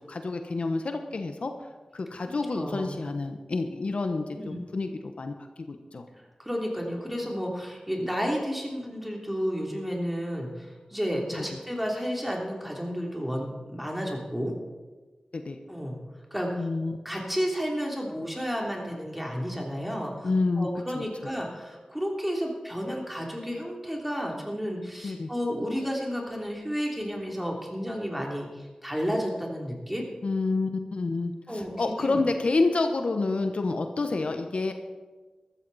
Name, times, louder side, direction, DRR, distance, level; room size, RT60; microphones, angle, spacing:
voice 1, 0.0-1.5 1.9-5.3 5.7-6.0 11.4-11.5 15.3-15.6 16.6-17.0 20.2-20.7 20.9-21.0 25.0-25.3 30.2-34.7, left 3 dB, 70° left, 6 dB, 1.0 m, -28 dB
voice 2, 2.2-3.0 4.3-4.6 6.4-14.5 15.7-16.0 16.3-16.7 17.0-20.3 20.6-30.0 31.5-32.2, equal, 5° right, -1 dB, 3.1 m, -32 dB
14.0 x 13.5 x 4.1 m, 1.3 s
wide cardioid pair, 85°, 2 cm